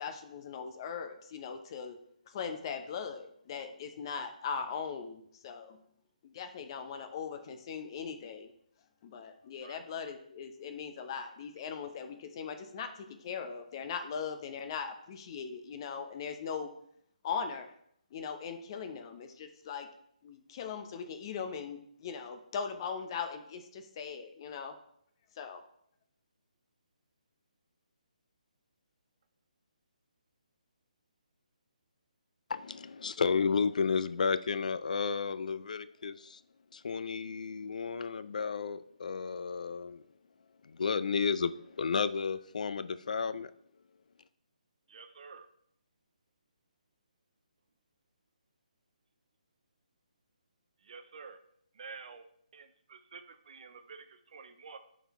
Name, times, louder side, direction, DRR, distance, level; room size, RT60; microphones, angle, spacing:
voice 1, 0.0-2.0 2.3-5.8 6.2-8.5 9.0-16.7 17.2-17.7 18.1-19.9 20.2-24.7 25.4-25.6, left 6 dB, 35° left, 7 dB, 0.8 m, -40 dB
voice 2, 32.5-36.4 36.7-40.0 40.7-43.5, left 5 dB, 65° left, 14 dB, 0.4 m, -32 dB
voice 3, 44.9-45.5 50.8-51.4 51.7-52.3 52.5-54.8, right 5 dB, 55° right, 9 dB, 0.5 m, -49 dB
11.0 x 4.0 x 3.1 m, 0.69 s
figure-of-eight pair, 150°, 4 cm